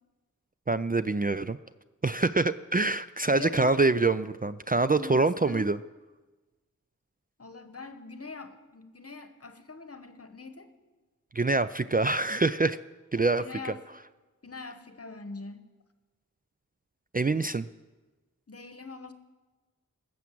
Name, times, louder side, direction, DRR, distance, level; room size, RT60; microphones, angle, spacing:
voice 1, 0.7-1.6 2.0-5.8 11.3-12.8 13.1-13.4 17.1-17.7, right 3 dB, 30° right, 13 dB, 0.4 m, -25 dB
voice 2, 3.3-3.8 5.0-5.7 7.4-10.7 13.4-13.8 14.4-15.6 18.5-19.1, left 4 dB, 50° left, 9 dB, 1.1 m, -42 dB
18.5 x 7.2 x 7.6 m, 1.2 s
wide cardioid pair, 50°, 31 cm